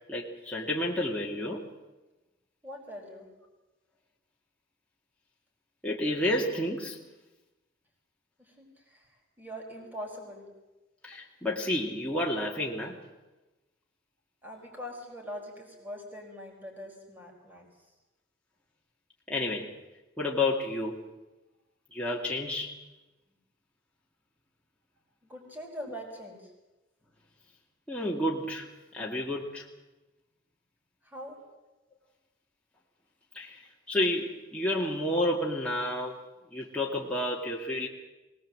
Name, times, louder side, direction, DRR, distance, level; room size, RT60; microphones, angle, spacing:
voice 1, 0.1-1.7 5.8-7.0 11.0-13.0 19.3-19.7 20.2-21.0 21.9-22.8 27.9-28.7 28.9-29.6 33.3-33.6 33.9-36.1 36.5-37.9, left 1 dB, 5° left, -4 dB, 2.2 m, -30 dB
voice 2, 2.6-3.3 8.4-10.5 14.4-17.7 25.2-26.5 31.0-31.4, equal, 10° right, 0 dB, 4.8 m, -43 dB
22.5 x 19.0 x 7.7 m, 1.1 s
head